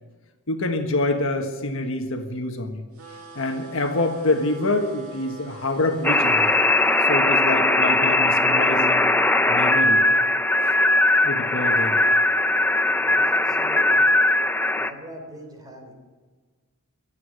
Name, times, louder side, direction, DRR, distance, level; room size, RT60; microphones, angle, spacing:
voice 1, 0.5-2.8 3.3-6.5 7.1-9.1 9.5-10.0 11.2-12.0, left 2 dB, 60° left, 4 dB, 1.5 m, -26 dB
sound 1, 3.0-7.1, right 2 dB, 75° right, 2.1 m, -44 dB
sound 2, 6.0-14.9, left 2 dB, 10° left, 0.6 m, -19 dB
voice 2, 12.8-14.1 14.7-15.9, equal, 20° right, 3 dB, 3.4 m, -43 dB
23.5 x 8.6 x 6.4 m, 1.4 s
head